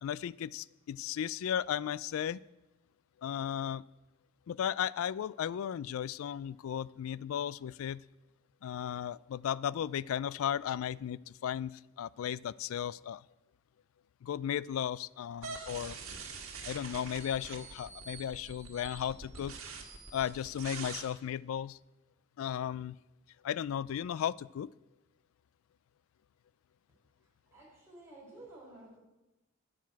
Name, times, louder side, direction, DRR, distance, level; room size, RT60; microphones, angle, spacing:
voice 1, 0.0-2.4 3.2-3.8 4.5-8.0 8.6-13.2 14.2-16.0 16.6-19.6 20.1-21.8 22.4-23.0 23.4-24.7, left 9 dB, 80° left, 19 dB, 0.3 m, -35 dB
sound 1, 15.4-21.0, right 4 dB, 85° right, 1.8 m, -45 dB
voice 2, 27.5-29.0, right 2 dB, 15° right, -5 dB, 4.8 m, -52 dB
12.0 x 9.3 x 4.7 m, 1.0 s
head